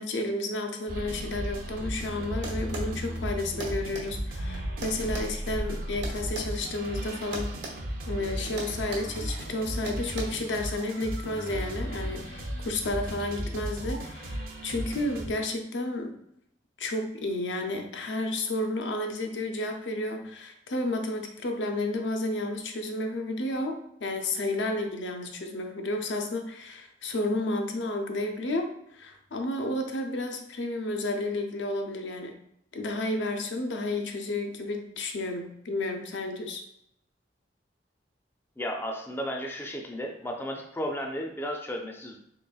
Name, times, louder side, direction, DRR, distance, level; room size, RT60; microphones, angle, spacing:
voice 1, 0.0-7.5 8.1-16.2 16.8-32.4 32.7-36.6, left 2 dB, 85° left, 4 dB, 0.6 m, -31 dB
sound 1, 0.9-15.3, equal, 50° right, 0.6 m, -35 dB
sound 2, 2.4-2.9 3.6-4.1 4.8-6.5 7.3-7.8 8.0-8.2 8.6-9.1 9.9-10.2, right 3 dB, 70° right, 1.0 m, -38 dB
voice 2, 38.6-42.2, equal, 15° left, 2 dB, 0.4 m, -34 dB
3.9 x 3.4 x 2.3 m, 0.74 s
head